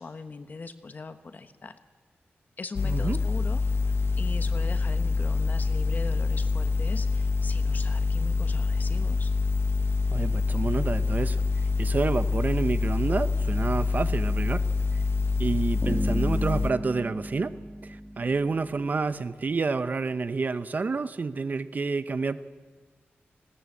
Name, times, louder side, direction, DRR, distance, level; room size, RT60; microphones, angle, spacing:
voice 1, 0.0-1.8 2.6-9.3, left 4 dB, 45° left, 10 dB, 1.1 m, -40 dB
sound 1, 2.8-16.7, left 4 dB, 75° left, 0.8 m, -26 dB
voice 2, 2.8-3.2 10.1-11.4 11.8-14.6 15.4-17.5 17.8-22.4, right 4 dB, 45° right, 13 dB, 0.8 m, -29 dB
Bass guitar, 15.8-18.9, equal, 10° left, 1.5 m, -35 dB
19.5 x 17.0 x 8.4 m, 1.5 s
wide cardioid pair, 120°, 4 cm